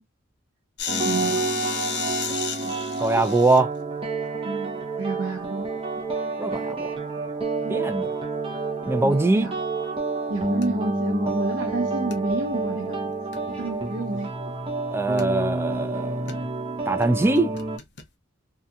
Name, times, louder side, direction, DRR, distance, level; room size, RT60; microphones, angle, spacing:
sound 1, 0.8-3.6 7.6-7.8 10.6-10.9 12.1-12.2 12.6-12.7 13.3-14.3 15.2-15.8 16.3-16.4 17.0-17.1 17.4-18.0, left 7 dB, 55° left, 0.7 m, -33 dB
sound 2, 0.9-17.8, right 3 dB, 25° right, 0.7 m, -29 dB
voice 1, 0.9-1.4 2.6-2.7 4.4-5.7 7.6-7.8 9.0-9.5 10.3-13.1 13.6-14.3, right 2 dB, 65° right, 0.7 m, -30 dB
voice 2, 3.0-3.7 6.4-6.8 7.7-8.0 8.9-9.5 14.9-16.4 16.9-17.5, right 2 dB, 10° right, 0.3 m, -22 dB
2.7 x 2.4 x 2.3 m
head